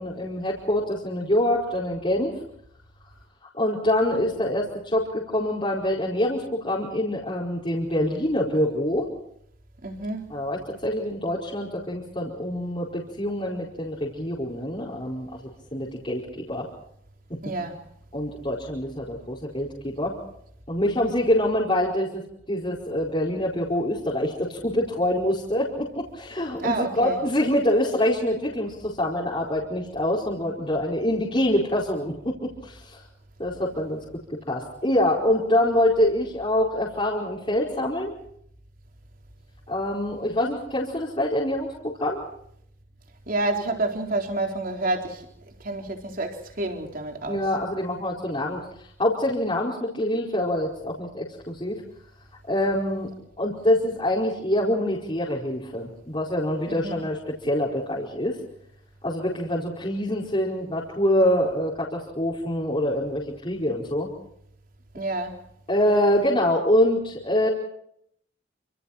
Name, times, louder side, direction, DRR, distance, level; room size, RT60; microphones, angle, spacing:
voice 1, 0.0-2.3 3.5-9.1 10.3-15.3 15.7-16.7 17.3-17.4 18.1-20.2 20.7-22.2 22.5-33.0 33.4-34.0 34.3-38.1 39.7-42.2 47.3-48.6 49.0-51.8 52.5-53.1 53.4-58.4 59.0-64.1 65.7-67.5, left 1 dB, 25° left, 4.8 m, -25 dB
voice 2, 9.8-10.4 17.4-17.8 26.6-27.2 43.3-45.2 45.6-47.4 56.7-57.0 64.9-65.4, right 2 dB, 45° right, 4.2 m, -29 dB
28.5 x 27.0 x 4.4 m
head